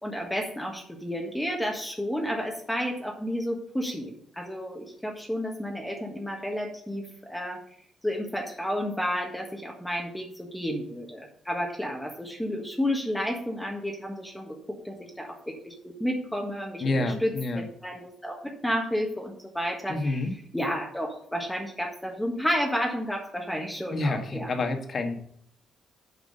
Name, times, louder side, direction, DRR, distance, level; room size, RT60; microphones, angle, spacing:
voice 1, 0.0-7.6 8.0-16.8 17.2-20.2 20.5-24.6, equal, 5° left, 1 dB, 1.5 m, -31 dB
voice 2, 16.8-17.6 19.9-20.3 23.9-25.1, left 2 dB, 45° left, 5 dB, 1.7 m, -28 dB
8.3 x 5.0 x 6.7 m, 0.64 s
cardioid pair, 90°, 0 cm